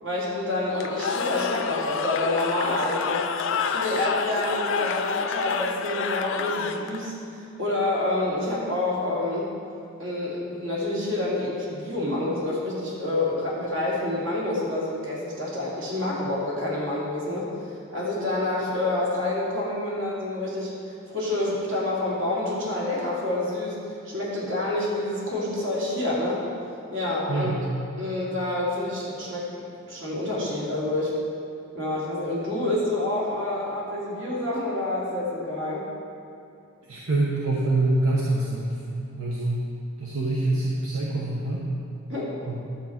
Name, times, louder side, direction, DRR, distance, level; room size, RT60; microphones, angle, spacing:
voice 1, 0.0-3.2 3.6-9.5 10.0-20.7 21.1-26.4 26.9-27.6 28.0-29.5 29.9-31.1 31.7-35.9 42.1-42.3, left 2 dB, 70° right, -6 dB, 2.7 m, -28 dB
Cheering / Crowd, 0.8-7.1, left 6 dB, 65° left, 0.5 m, -28 dB
voice 2, 27.3-27.6 36.9-39.6 40.0-41.6 42.5-42.6, right 2 dB, 90° right, -4 dB, 1.1 m, -25 dB
11.5 x 7.2 x 4.5 m, 2.5 s
head